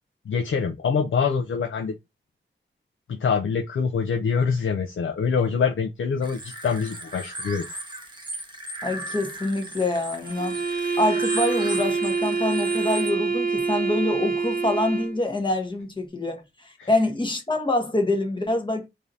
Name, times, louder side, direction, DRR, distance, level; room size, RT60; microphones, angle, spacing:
voice 1, 0.3-2.0 3.1-7.7 16.8-16.9, left 6 dB, 85° left, 0.5 m, -25 dB
sound 1, 6.2-13.1, right 1 dB, 25° right, 1.0 m, -37 dB
voice 2, 8.8-10.6 11.0-18.9, left 2 dB, 25° left, 1.2 m, -25 dB
sound 2, 10.2-15.2, right 4 dB, 50° right, 0.8 m, -26 dB
4.8 x 2.8 x 2.7 m
wide cardioid pair, 85°, 20 cm